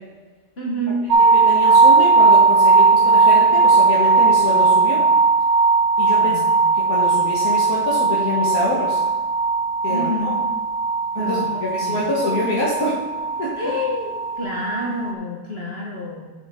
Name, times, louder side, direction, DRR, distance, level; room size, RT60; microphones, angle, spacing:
voice 1, 0.6-1.1 6.2-6.6 9.9-10.5 11.1-12.1 13.6-16.3, left 1 dB, 45° left, -3 dB, 1.5 m, -28 dB
sound 1, 1.1-15.1, right 4 dB, 65° right, 0.9 m, -17 dB
voice 2, 1.3-5.0 6.0-6.4 6.7-9.0 9.8-10.4 11.1-13.0 13.4-13.5, left 2 dB, 80° left, -6 dB, 1.9 m, -26 dB
7.6 x 7.1 x 3.6 m, 1.3 s
omnidirectional pair, 1.5 m